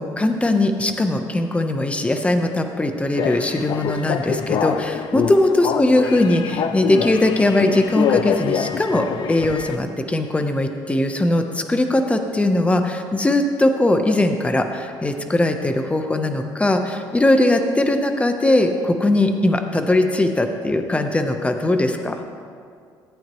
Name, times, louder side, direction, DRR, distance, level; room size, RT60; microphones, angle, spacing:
voice 1, 0.0-22.2, left 1 dB, 15° left, 6 dB, 0.9 m, -20 dB
sound 1, 3.2-9.8, left 7 dB, 55° left, 0.5 m, -25 dB
14.5 x 8.8 x 3.1 m, 2.2 s
cardioid pair, 90°, 9 cm